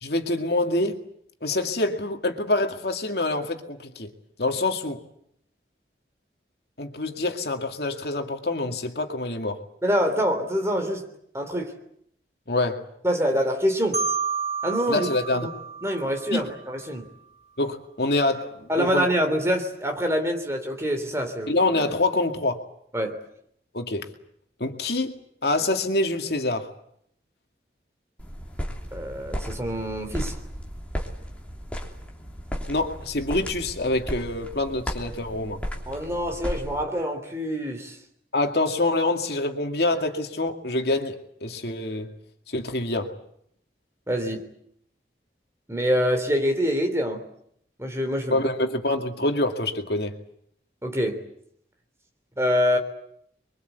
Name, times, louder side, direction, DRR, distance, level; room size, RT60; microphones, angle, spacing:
voice 1, 0.0-1.0 1.4-4.1 4.4-5.0 6.8-9.6 12.5-12.9 14.9-15.5 16.3-16.5 17.6-19.1 21.5-22.6 23.7-24.1 24.6-26.7 32.7-35.6 38.3-41.2 41.4-42.1 42.5-43.1 48.3-50.2, left 2 dB, 65° left, 2.3 m, -26 dB
voice 2, 9.8-11.0 11.3-11.7 13.0-14.0 14.6-15.1 15.8-17.1 18.7-21.5 22.9-23.2 28.9-30.3 35.9-38.0 44.1-44.4 45.7-47.2 47.8-48.4 50.8-51.2 52.4-52.8, equal, 15° right, 3.3 m, -25 dB
Marimba xylophone, 13.9-16.8, right 5 dB, 40° right, 2.5 m, -30 dB
sound 1, 28.2-36.8, equal, 5° left, 3.2 m, -35 dB
27.5 x 23.5 x 8.2 m
head